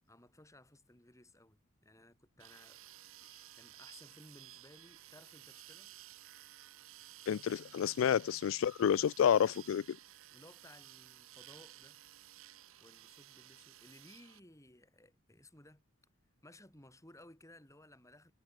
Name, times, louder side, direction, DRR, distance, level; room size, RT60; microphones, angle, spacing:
voice 1, 0.1-6.0 10.3-12.0 12.8-15.8 16.4-18.3, left 1 dB, 15° left, 4.3 m, -60 dB
sound 1, 2.4-14.4, right 14 dB, 75° right, 0.9 m, -55 dB
voice 2, 7.3-10.0, left 8 dB, 70° left, 0.3 m, -30 dB
head